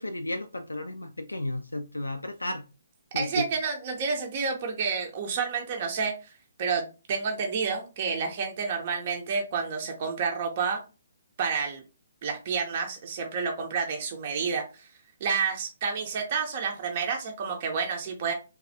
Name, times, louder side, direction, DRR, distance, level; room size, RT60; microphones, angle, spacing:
voice 1, 0.0-2.7 3.1-3.5, left 1 dB, 85° left, 0.3 m, -33 dB
voice 2, 3.1-6.1 6.6-10.8 11.4-11.8 12.2-14.9 15.2-18.3, right 5 dB, 40° right, 0.6 m, -29 dB
3.2 x 2.3 x 2.6 m
figure-of-eight pair, 135°, 0 cm